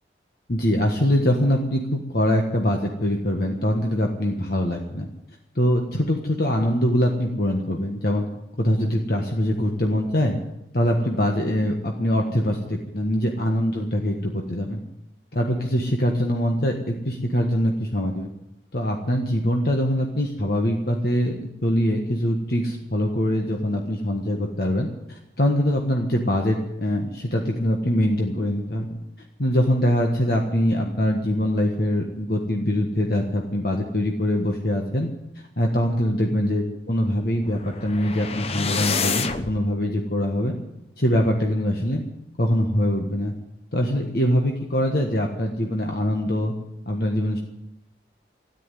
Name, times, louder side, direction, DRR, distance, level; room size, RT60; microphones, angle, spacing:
voice 1, 0.5-5.1 5.5-8.2 8.5-10.4 10.7-14.8 15.3-18.3 18.7-28.9 29.4-35.1 35.3-40.6 41.0-42.0 42.4-43.3 43.7-46.5 46.9-47.4, equal, 55° left, 1 dB, 1.5 m, -23 dB
sound 1, 37.4-39.6, left 5 dB, 35° left, 0.8 m, -28 dB
14.0 x 10.5 x 9.2 m, 0.87 s
head